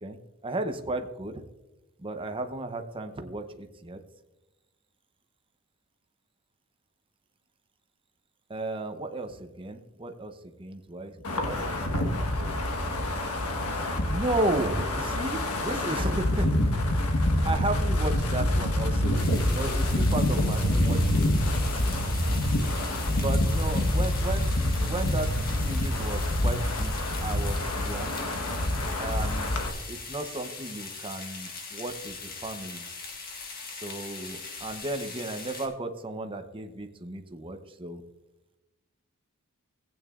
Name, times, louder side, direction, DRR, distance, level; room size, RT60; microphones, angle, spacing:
voice 1, 0.0-1.4 2.0-4.0 8.5-12.2 14.1-16.5 17.0-21.3 21.6-22.0 23.2-24.5 24.8-25.3 25.6-28.2 29.0-29.6 29.9-32.8 33.7-38.0, right 2 dB, 25° right, 6 dB, 0.8 m, -34 dB
Wind, 11.2-29.7, left 1 dB, 85° left, 1.4 m, -26 dB
sound 1, 19.1-35.7, left 4 dB, 40° left, 1.7 m, -40 dB
16.0 x 8.9 x 2.5 m, 1.0 s
head